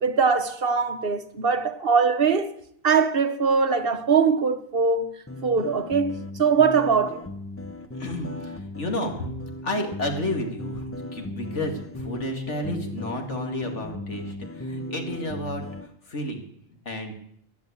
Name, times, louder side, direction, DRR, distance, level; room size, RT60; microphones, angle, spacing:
voice 1, 0.0-2.5 2.8-5.1 5.4-7.2, right 5 dB, 45° right, 1.1 m, -22 dB
sound 1, 5.3-15.9, left 1 dB, 10° left, 0.8 m, -37 dB
voice 2, 8.0-9.3 9.6-15.6 16.1-16.4 16.9-17.1, left 1 dB, 55° left, 2.6 m, -31 dB
15.0 x 11.0 x 8.5 m
omnidirectional pair, 1.4 m